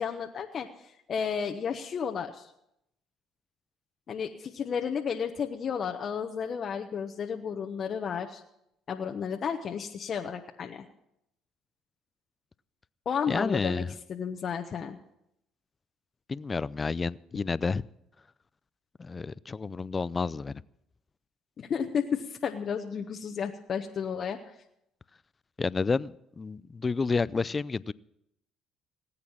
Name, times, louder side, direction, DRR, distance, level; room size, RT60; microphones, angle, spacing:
voice 1, 0.0-2.5 4.1-8.4 8.9-10.9 13.0-13.8 14.1-15.0 21.6-24.6, left 7 dB, 50° left, 3 dB, 1.1 m, -32 dB
voice 2, 13.3-13.9 16.3-17.8 19.0-20.6 25.6-27.9, left 4 dB, 30° left, 20 dB, 0.5 m, -30 dB
18.5 x 8.5 x 7.2 m, 0.80 s
hypercardioid pair, 65°, 0 cm